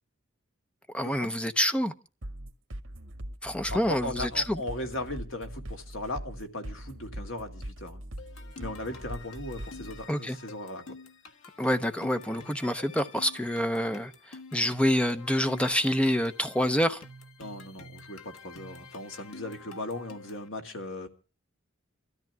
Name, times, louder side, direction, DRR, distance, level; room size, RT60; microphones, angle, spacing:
voice 1, 0.9-1.9 3.4-4.6 10.1-10.4 11.6-17.0, equal, 5° left, 0.7 m, -27 dB
sound 1, 2.2-10.1, right 1 dB, 65° right, 1.7 m, -41 dB
voice 2, 3.7-8.0 8.6-10.8 17.4-21.1, left 1 dB, 70° left, 2.2 m, -37 dB
sound 2, 8.2-20.5, left 3 dB, 85° left, 1.4 m, -48 dB
29.0 x 13.5 x 2.3 m
head